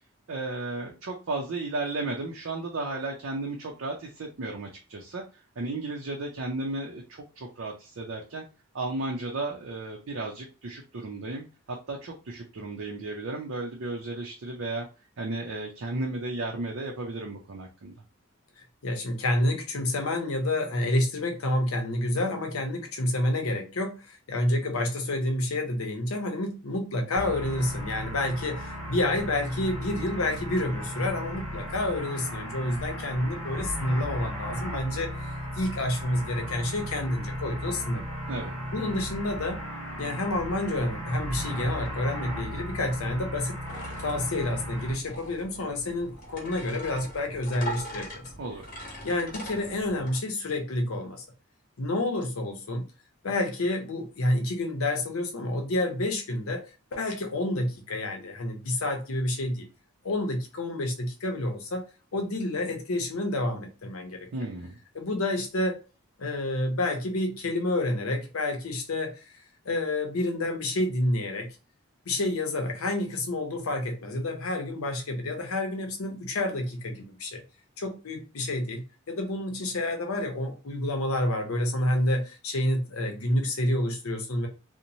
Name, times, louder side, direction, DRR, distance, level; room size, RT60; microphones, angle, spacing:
voice 1, 0.3-5.2 5.6-8.4 8.7-14.9 15.2-18.0 38.3-38.5 48.4-48.6 64.3-64.8, right 2 dB, 70° right, 0.5 m, -34 dB
voice 2, 18.8-38.1 38.7-39.7 40.0-43.6 44.0-48.3 49.0-51.2 51.8-52.9 53.2-56.7 56.9-59.7 60.0-61.9 62.1-64.3 64.9-65.8 66.2-69.2 69.7-71.5 72.1-77.4 77.8-84.5, left 1 dB, 80° left, 0.7 m, -29 dB
sound 1, 27.2-44.9, equal, 5° left, 1.0 m, -36 dB
sound 2, 43.7-50.2, equal, 40° left, 1.0 m, -41 dB
2.9 x 2.1 x 2.6 m
head